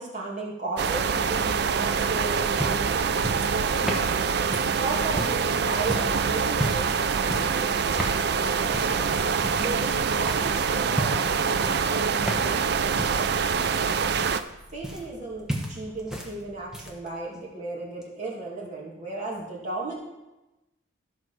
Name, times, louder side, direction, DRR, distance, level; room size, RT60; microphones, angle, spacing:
voice 1, 0.0-4.3 4.7-9.2 9.6-13.9 14.7-20.0, right 2 dB, 35° right, -4 dB, 2.6 m, -36 dB
sound 1, 0.8-14.4, right 6 dB, 50° right, 0.4 m, -25 dB
sound 2, 2.6-5.5 5.9-6.2 6.5-7.0 7.3-7.6 8.0-8.3 8.7-9.0 9.4-9.9 10.3-10.5 10.9-11.3 11.6-12.7 13.0-15.2 15.5-16.3 16.6-17.1 18.0-18.1, equal, ahead, 1.0 m, -33 dB
sound 3, 14.4-17.2 17.4-17.5, equal, 70° left, 2.7 m, -48 dB
13.5 x 4.7 x 6.1 m, 1.0 s
head